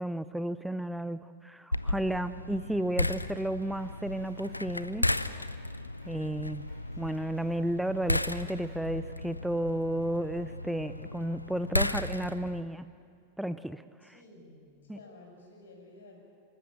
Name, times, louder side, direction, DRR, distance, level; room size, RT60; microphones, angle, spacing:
voice 1, 0.0-5.1 6.1-6.6 7.0-12.9 13.4-14.1 14.9-15.0, right 1 dB, 5° right, 13 dB, 0.5 m, -33 dB
sound 1, 1.7-12.6, left 1 dB, 85° left, 0.6 m, -34 dB
Drum kit, 3.6-8.9, right 2 dB, 25° right, 7.5 m, -61 dB
voice 2, 14.0-16.2, left 2 dB, 65° left, 1 dB, 6.1 m, -53 dB
26.5 x 13.5 x 8.9 m, 2.3 s
figure-of-eight pair, 90°, 0 cm